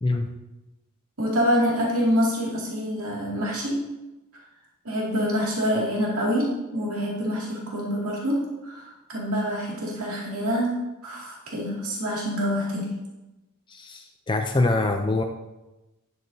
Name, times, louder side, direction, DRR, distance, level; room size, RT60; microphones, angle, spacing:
voice 1, 0.0-0.3 13.7-15.2, left 2 dB, 20° left, 4 dB, 0.5 m, -24 dB
voice 2, 1.2-3.8 4.8-10.8 11.0-12.9, equal, 80° right, -4 dB, 2.4 m, -26 dB
10.5 x 8.1 x 2.7 m, 1.0 s
head